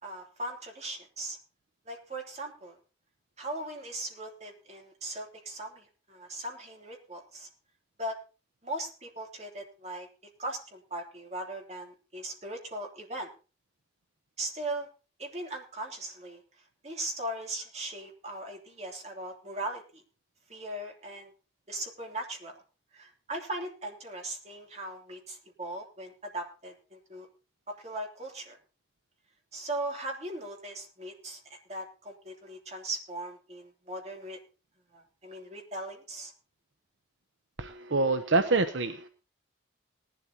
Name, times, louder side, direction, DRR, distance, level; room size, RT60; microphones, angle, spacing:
voice 1, 0.0-1.4 1.8-2.8 3.4-7.5 8.0-8.2 8.6-10.1 10.4-13.3 14.4-14.9 15.2-16.4 16.8-20.0 20.5-21.3 21.7-22.6 22.9-27.3 27.7-28.6 29.5-34.4 34.9-36.3, right 1 dB, 35° right, 2 dB, 3.1 m, -39 dB
voice 2, 37.6-39.1, right 3 dB, 70° right, 9 dB, 0.9 m, -26 dB
19.0 x 12.0 x 2.9 m, 0.34 s
head